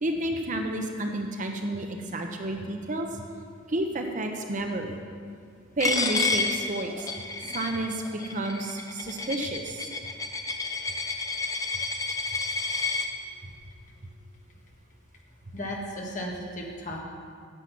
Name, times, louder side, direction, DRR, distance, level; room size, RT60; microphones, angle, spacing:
voice 1, 0.0-3.1 3.7-5.0 5.8-7.1 7.4-8.0 8.3-9.9, right 1 dB, 40° right, 3 dB, 0.7 m, -30 dB
Coin (dropping), 5.8-13.1, left 4 dB, 15° left, 0.5 m, -30 dB
voice 2, 15.5-17.0, equal, 35° left, -1 dB, 1.5 m, -35 dB
9.9 x 7.7 x 5.9 m, 2.2 s
head